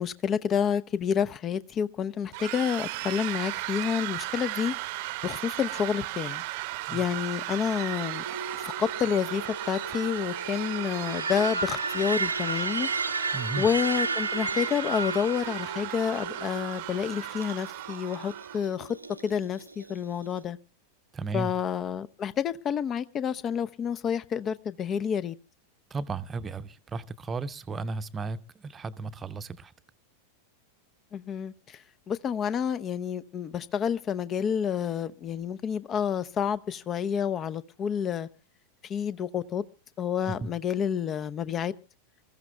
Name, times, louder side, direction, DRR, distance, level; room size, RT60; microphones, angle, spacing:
voice 1, 0.0-4.7 5.2-6.4 6.9-8.2 8.6-12.9 13.6-19.0 19.2-20.6 21.3-25.3 31.1-31.5 32.1-38.3 38.9-39.6 40.0-41.7, left 8 dB, 25° left, 0.7 m, -29 dB
sound 1, 2.3-18.6, right 19 dB, 50° right, 0.8 m, -36 dB
sound 2, 7.8-20.4, right 3 dB, 85° right, 0.7 m, -34 dB
voice 2, 13.3-13.7 21.1-21.5 25.9-29.7 40.3-40.5, right 3 dB, 20° right, 0.8 m, -34 dB
26.5 x 14.5 x 2.3 m
figure-of-eight pair, 90°, 0 cm